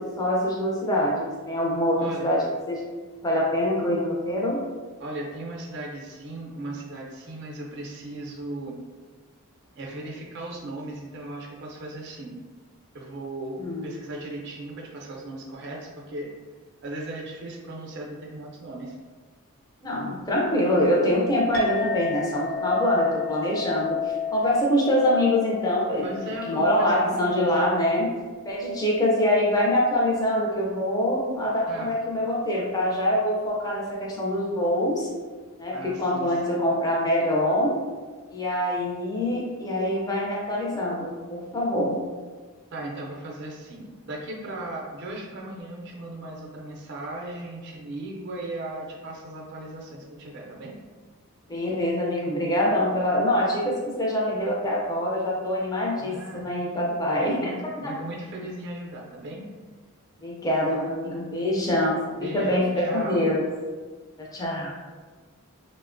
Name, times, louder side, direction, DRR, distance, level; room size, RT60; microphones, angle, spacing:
voice 1, 0.0-2.8 3.2-4.6 13.6-13.8 19.8-26.1 26.5-28.1 28.5-35.1 35.6-37.7 38.3-42.0 51.5-57.5 57.8-57.9 60.2-63.4 64.2-64.7, left 1 dB, 15° left, -4 dB, 0.4 m, -24 dB
voice 2, 2.0-2.4 5.0-8.8 9.8-12.4 12.9-16.3 16.8-19.0 26.0-27.5 31.7-32.0 35.7-36.6 42.7-50.7 56.0-56.5 57.2-59.5 60.7-60.9 62.2-63.3, right 1 dB, 50° right, -1 dB, 0.4 m, -37 dB
Chink clink, 21.5-30.2, left 7 dB, 65° left, 0.6 m, -33 dB
2.9 x 2.1 x 2.5 m, 1.4 s
head